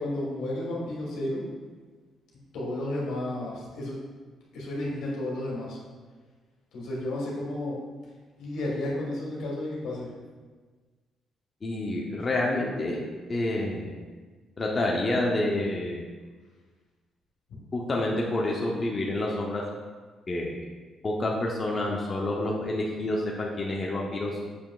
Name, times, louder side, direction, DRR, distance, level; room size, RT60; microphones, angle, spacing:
voice 1, 0.0-1.4 2.5-4.0 4.5-5.8 6.7-7.7 8.4-10.1, left 1 dB, 85° left, -4 dB, 1.8 m, -32 dB
voice 2, 11.6-13.0 13.3-13.9 14.6-16.1 17.7-19.6 20.3-20.6 21.0-24.4, left 1 dB, 35° left, -2 dB, 0.8 m, -28 dB
6.7 x 5.7 x 2.4 m, 1.4 s
cardioid pair, 90°, 0 cm